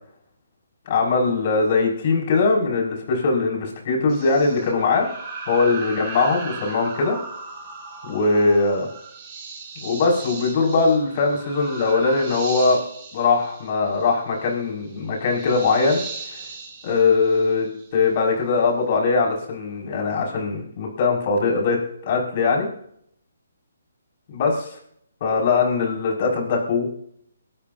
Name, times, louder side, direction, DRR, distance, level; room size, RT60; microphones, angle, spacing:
voice 1, 0.9-5.1 5.5-7.2 8.0-8.9 9.8-12.8 13.1-16.0 16.8-17.7 17.9-21.8 22.0-22.7 24.3-24.7 25.2-26.9, left 4 dB, 40° left, 0 dB, 6.1 m, -21 dB
sound 1, 4.1-18.0, right 4 dB, 25° right, 7.4 m, -37 dB
23.0 x 13.5 x 2.8 m, 0.66 s
hypercardioid pair, 155°, 0 cm